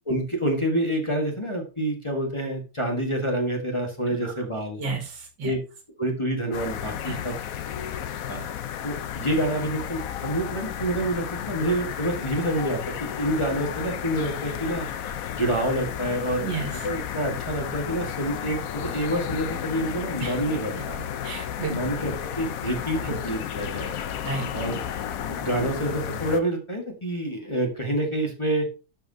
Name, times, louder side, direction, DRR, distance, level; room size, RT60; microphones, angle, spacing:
voice 1, 0.1-4.8 5.4-5.6 6.0-7.3 8.3-8.5 8.8-14.9 15.3-16.5 16.8-21.0 21.7-23.9 24.5-24.8 25.2-28.7, right 1 dB, 20° left, 0 dB, 1.4 m, -27 dB
voice 2, 4.8-5.5 7.0-7.2 16.4-16.9 20.2-20.4 21.2-22.1 23.0-23.2 24.2-24.5, right 4 dB, 85° right, 3 dB, 2.4 m, -32 dB
sound 1, 6.5-26.4, left 9 dB, 65° left, 1.0 m, -33 dB
12.0 x 5.4 x 2.7 m, 0.33 s
omnidirectional pair, 1.8 m